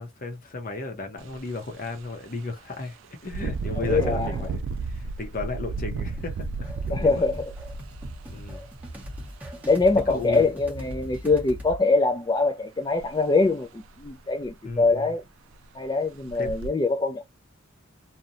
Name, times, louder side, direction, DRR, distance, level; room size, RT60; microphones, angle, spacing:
voice 1, 0.0-7.3 8.3-8.7 9.5-9.6 10.1-10.5 14.6-15.1 16.4-16.5, left 3 dB, 45° left, 0.7 m, -35 dB
Engine, 1.2-1.4 1.9-2.0 3.2-9.0 9.9-10.0 10.5-11.2 13.0-13.1 13.5-13.6 14.0-14.1 14.5-15.0 15.5-15.6 16.2-16.7, right 4 dB, 75° right, 0.3 m, -33 dB
voice 2, 3.8-4.3 6.9-7.4 9.7-15.2 15.7-17.2, left 3 dB, 20° left, 0.3 m, -23 dB
sound 1, 6.2-11.8, equal, 10° right, 0.8 m, -40 dB
2.8 x 2.1 x 2.5 m
head